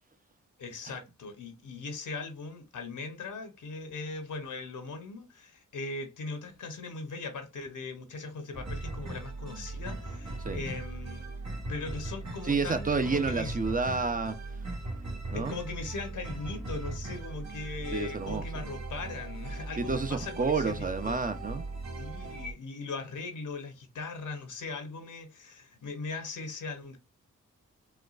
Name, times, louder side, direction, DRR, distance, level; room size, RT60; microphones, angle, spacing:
voice 1, 0.6-11.3 11.7-13.6 15.3-21.2 22.0-27.0, left 4 dB, 75° left, 0.9 m, -39 dB
sound 1, 8.5-22.5, right 2 dB, 60° right, 1.3 m, -39 dB
voice 2, 12.4-14.4 15.3-15.6 17.9-18.4 19.8-21.6, right 4 dB, 25° right, 0.7 m, -30 dB
4.3 x 2.3 x 2.4 m
cardioid pair, 60°, 31 cm